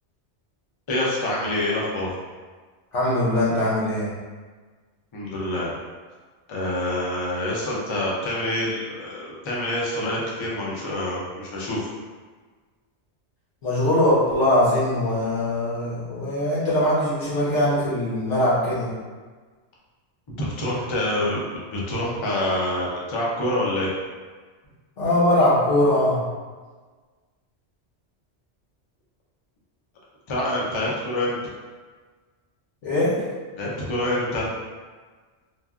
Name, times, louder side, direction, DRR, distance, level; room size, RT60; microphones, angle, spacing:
voice 1, 0.9-2.1 5.1-5.7 6.5-11.8 20.3-23.9 30.3-31.4 33.6-34.5, left 1 dB, 35° left, -5 dB, 0.5 m, -26 dB
voice 2, 2.9-4.1 13.6-18.9 25.0-26.2 32.8-33.2, left 1 dB, 90° left, -8 dB, 1.3 m, -21 dB
3.2 x 2.4 x 2.3 m, 1.4 s
omnidirectional pair, 1.2 m